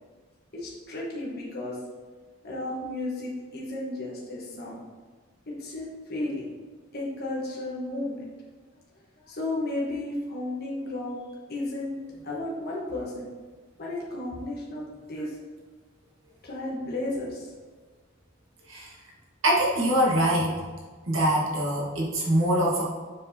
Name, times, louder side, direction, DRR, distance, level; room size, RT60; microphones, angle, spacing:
voice 1, 0.5-1.8 2.4-4.8 5.6-6.5 6.9-8.2 9.2-13.2 13.8-15.4 16.4-17.5, left 2 dB, 55° left, -5 dB, 1.3 m, -33 dB
voice 2, 19.4-20.6 21.1-22.8, right 1 dB, 80° right, -4 dB, 1.7 m, -23 dB
7.2 x 4.6 x 2.8 m, 1.4 s
head